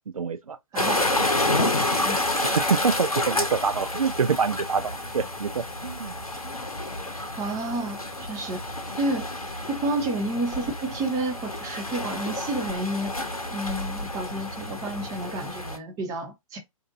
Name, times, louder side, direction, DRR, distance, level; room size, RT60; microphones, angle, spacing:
voice 1, 0.1-0.6 2.4-6.1, right 5 dB, 75° right, 0.4 m, -26 dB
voice 2, 0.7-1.0 1.6-2.2 3.3-3.4 7.4-8.6 8.9-9.3 9.7-13.1 13.5-16.6, right 2 dB, 20° right, 0.9 m, -30 dB
sound 1, 0.8-15.8, left 1 dB, 90° left, 0.7 m, -29 dB
2.7 x 2.5 x 2.7 m
figure-of-eight pair, 120°, 18 cm